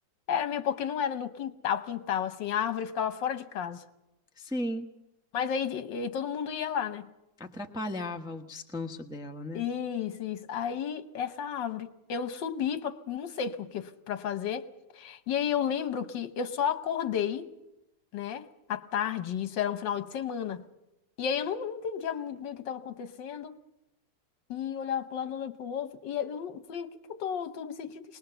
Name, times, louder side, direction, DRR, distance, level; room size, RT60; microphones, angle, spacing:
voice 1, 0.3-3.8 5.3-7.1 9.5-14.7 14.9-17.5 18.1-20.6 21.2-23.5 24.5-28.0, left 8 dB, 75° left, 1.7 m, -32 dB
voice 2, 4.4-4.9 7.4-9.6, left 1 dB, 5° right, 0.7 m, -36 dB
21.5 x 20.0 x 6.9 m
omnidirectional pair, 2.0 m